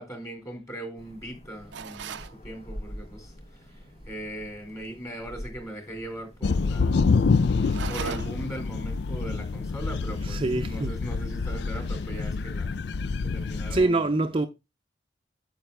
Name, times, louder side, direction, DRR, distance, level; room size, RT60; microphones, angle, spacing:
voice 1, 0.0-7.1 7.6-12.7 13.2-14.1, right 1 dB, 20° left, 3.8 m, -39 dB
sound 1, 1.0-10.7, equal, 40° left, 1.0 m, -47 dB
sound 2, 1.7-2.4 7.6-8.5, right 6 dB, 85° right, 0.5 m, -37 dB
sound 3, 6.4-13.8, left 4 dB, 65° left, 0.4 m, -27 dB
voice 2, 10.3-10.9 13.7-14.5, right 2 dB, 30° right, 0.6 m, -24 dB
9.1 x 7.1 x 3.4 m
head